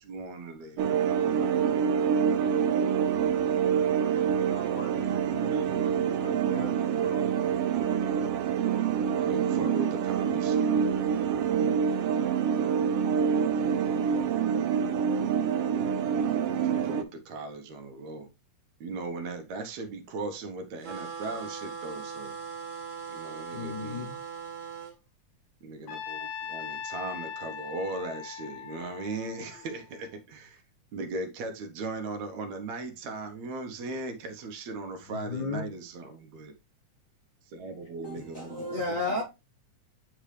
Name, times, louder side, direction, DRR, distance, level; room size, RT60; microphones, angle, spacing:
voice 1, 0.0-1.2 5.0-6.0 9.2-10.7 13.5-14.2 16.2-18.3 18.8-22.4 23.1-24.1 25.6-30.6 30.9-36.5 37.5-38.7 39.0-39.1, right 3 dB, 70° right, 2.2 m, -38 dB
voice 2, 0.7-1.8 4.0-7.3 9.6-9.7 23.5-24.2 35.1-35.7, left 6 dB, 90° left, 1.0 m, -41 dB
sound 1, 0.8-17.0, right 7 dB, 85° right, 1.3 m, -26 dB
sound 2, 20.8-24.9, right 6 dB, 40° right, 1.1 m, -39 dB
Trumpet, 25.9-30.1, left 8 dB, 70° left, 2.2 m, -40 dB
voice 3, 38.0-39.2, left 2 dB, 40° left, 1.2 m, -32 dB
10.0 x 3.6 x 3.2 m
omnidirectional pair, 3.6 m